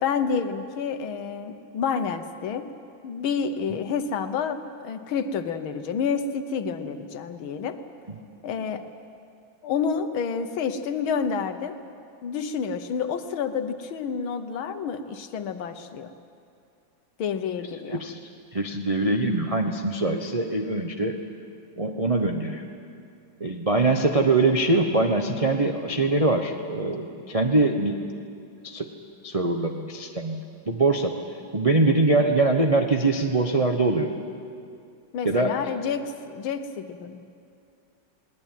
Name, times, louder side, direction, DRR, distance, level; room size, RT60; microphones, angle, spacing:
voice 1, 0.0-2.7 3.0-7.8 8.4-8.9 9.6-11.8 12.2-16.1 17.2-18.0 35.1-37.2, left 6 dB, 85° left, 9 dB, 1.9 m, -29 dB
voice 2, 18.5-21.2 21.8-22.6 23.4-28.1 28.6-28.9 29.2-31.2 31.5-34.1 35.2-35.5, right 2 dB, 25° right, 2 dB, 0.8 m, -23 dB
22.0 x 18.5 x 9.2 m, 2.5 s
omnidirectional pair, 2.2 m